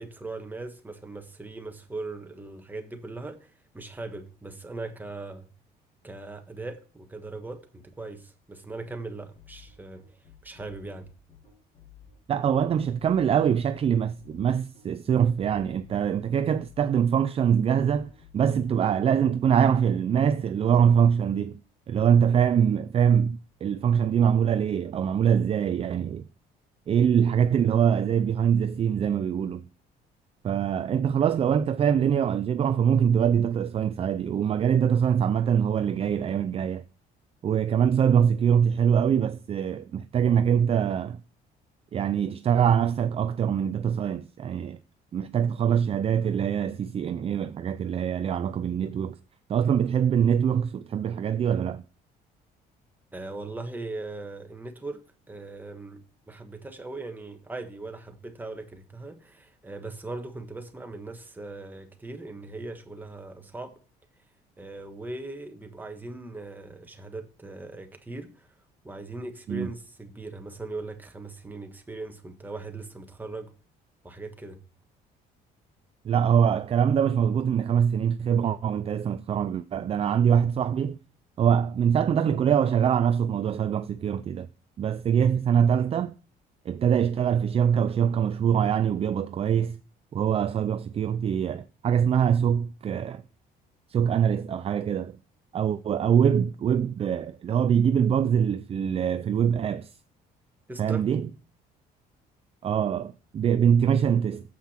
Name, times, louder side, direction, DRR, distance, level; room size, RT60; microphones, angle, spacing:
voice 1, 0.0-5.5 6.0-10.0 10.4-11.1 53.1-55.0 55.3-56.0 56.3-63.8 64.6-68.5 68.8-73.5 74.0-74.6 100.7-101.0, right 2 dB, 10° right, 1.4 m, -39 dB
sound 1, 9.3-18.8, left 8 dB, 45° left, 4.3 m, -53 dB
voice 2, 12.3-21.6 21.9-26.2 26.9-29.7 30.4-36.8 37.4-41.2 41.9-44.8 45.1-49.2 49.5-51.8 69.5-69.7 76.0-81.0 81.4-84.5 84.8-86.1 86.7-89.8 90.1-93.2 93.9-95.2 95.5-99.9 100.8-101.3 102.6-104.4, right 8 dB, 35° right, 0.4 m, -23 dB
7.5 x 5.8 x 4.3 m
cardioid pair, 110°, 17 cm